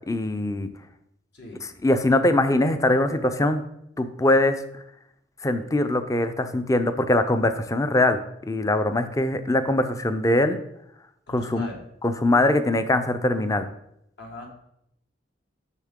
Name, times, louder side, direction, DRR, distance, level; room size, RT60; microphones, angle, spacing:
voice 1, 0.1-0.7 1.6-3.6 4.0-4.6 5.4-8.2 8.5-10.6 11.3-11.7 12.0-13.7, left 1 dB, 20° left, 10 dB, 0.5 m, -22 dB
voice 2, 11.3-11.8 14.2-14.5, left 2 dB, 65° left, 0 dB, 1.7 m, -40 dB
8.2 x 6.3 x 3.7 m, 0.76 s
head